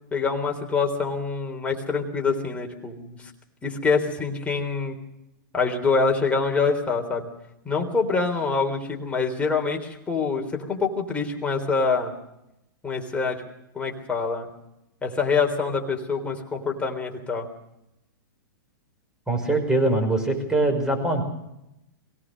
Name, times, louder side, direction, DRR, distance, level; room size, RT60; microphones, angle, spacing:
voice 1, 0.1-3.3 3.6-5.0 5.5-7.3 7.7-12.1 12.8-13.4 13.7-14.5 15.0-17.5, left 4 dB, 10° left, 1 dB, 3.6 m, -25 dB
voice 2, 19.3-21.2, right 2 dB, 5° right, 3 dB, 5.5 m, -22 dB
23.0 x 17.5 x 6.5 m, 0.85 s
hypercardioid pair, 135°, 11 cm